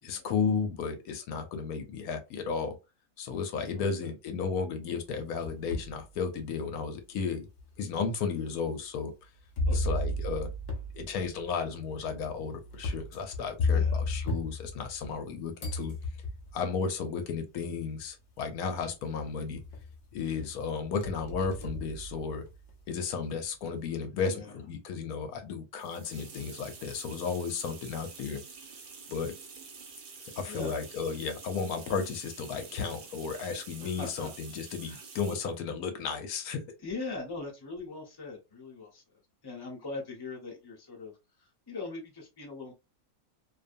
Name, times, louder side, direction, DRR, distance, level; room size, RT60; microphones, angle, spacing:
voice 1, 0.0-2.8 3.2-7.5 7.8-9.1 9.7-10.5 10.9-15.9 16.5-19.6 20.1-22.4 22.9-28.4 29.1-29.3 30.4-36.6, left 5 dB, 80° left, 1.1 m, -34 dB
voice 2, 3.7-4.1 8.5-8.6 9.7-9.9 13.7-14.0 24.2-24.5 30.2-30.7 33.8-34.3 34.8-35.0 36.8-39.0 39.4-41.1 41.4-42.7, left 3 dB, 20° left, 0.8 m, -41 dB
sound 1, 5.1-6.0 6.6-6.7 7.6-7.7 9.6-15.3 15.6-16.6 17.8-17.9 18.4-18.8 19.2-20.0 20.4-22.7, left 2 dB, 50° left, 0.5 m, -33 dB
sound 2, 25.8-35.6, right 5 dB, 60° right, 0.5 m, -48 dB
2.6 x 2.3 x 2.5 m
omnidirectional pair, 1.6 m